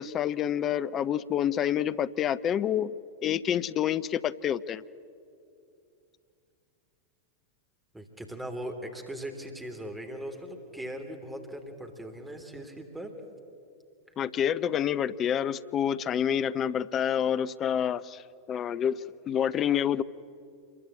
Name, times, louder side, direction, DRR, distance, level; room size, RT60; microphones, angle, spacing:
voice 1, 0.0-2.9 3.2-4.8 14.2-20.0, left 9 dB, 30° left, 16 dB, 0.6 m, -28 dB
voice 2, 7.9-13.1, right 1 dB, 5° right, 4 dB, 3.2 m, -39 dB
27.5 x 22.5 x 8.9 m, 2.5 s
figure-of-eight pair, 90°, 0 cm